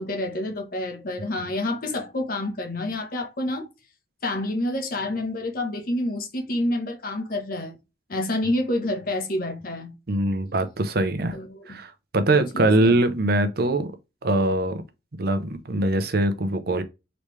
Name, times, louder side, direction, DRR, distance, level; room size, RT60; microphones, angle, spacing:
voice 1, 0.0-3.7 4.2-7.8 8.1-9.9 11.3-11.8 12.3-13.0, left 1 dB, 55° left, 1.1 m, -28 dB
voice 2, 10.1-11.4 11.7-13.9 14.2-14.8 15.2-16.8, right 2 dB, 60° right, 0.8 m, -22 dB
4.0 x 3.3 x 3.2 m
head